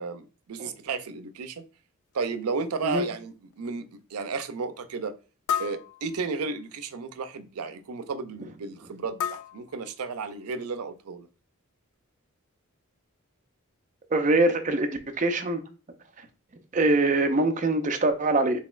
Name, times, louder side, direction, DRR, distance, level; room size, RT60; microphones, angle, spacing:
voice 1, 0.0-1.6 2.1-5.1 5.6-11.3, right 4 dB, 90° right, 0.5 m, -33 dB
sound 1, 2.1-2.2 2.9-3.0 3.5-3.7 5.5-6.7 9.2-10.5, left 8 dB, 90° left, 0.3 m, -34 dB
voice 2, 14.1-15.6 16.7-18.6, right 2 dB, 35° right, 0.5 m, -23 dB
4.1 x 3.7 x 2.4 m
head